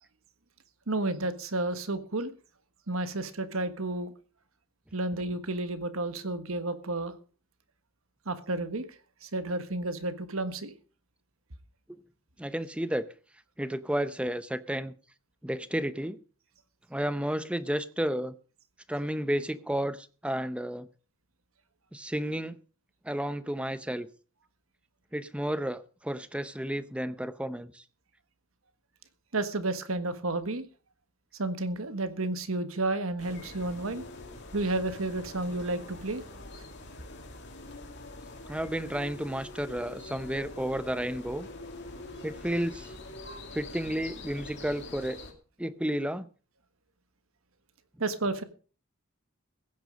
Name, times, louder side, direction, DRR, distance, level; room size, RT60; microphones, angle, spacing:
voice 1, 0.9-2.3 2.9-4.1 4.9-7.2 8.2-8.9 9.2-10.7 29.3-30.6 31.3-34.0 34.5-36.2 48.0-48.4, right 2 dB, 70° right, 11 dB, 1.5 m, -31 dB
voice 2, 12.4-13.1 13.6-14.9 15.4-16.2 16.9-18.3 18.9-20.9 21.9-22.6 23.0-24.1 25.1-27.8 38.5-41.5 42.2-42.9 43.5-45.2 45.6-46.3, equal, 5° right, 14 dB, 0.7 m, -32 dB
sound 1, 33.2-45.3, left 2 dB, 55° left, 2.6 m, -44 dB
16.0 x 9.5 x 5.2 m, 0.38 s
head